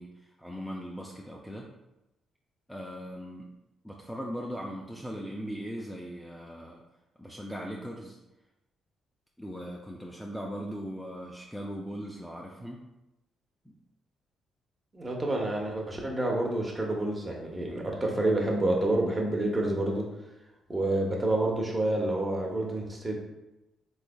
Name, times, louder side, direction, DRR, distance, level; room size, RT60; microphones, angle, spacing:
voice 1, 0.0-1.7 2.7-3.5 3.8-6.8 7.2-8.2 9.4-12.8, equal, ahead, -2 dB, 0.4 m, -39 dB
voice 2, 14.9-20.1 20.7-23.2, right 1 dB, 25° right, -1 dB, 0.8 m, -28 dB
3.4 x 3.2 x 2.2 m, 0.96 s
cardioid pair, 90°, 0 cm